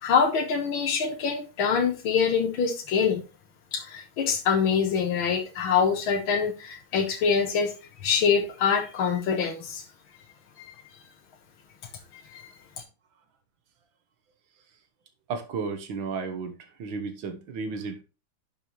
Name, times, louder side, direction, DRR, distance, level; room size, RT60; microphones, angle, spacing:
voice 1, 0.0-3.2 3.7-7.7 8.0-9.8 10.6-10.7 12.3-12.5, left 6 dB, 85° left, 2.1 m, -25 dB
voice 2, 15.3-18.0, right 4 dB, 80° right, 2.0 m, -33 dB
11.0 x 5.9 x 3.1 m
omnidirectional pair, 2.2 m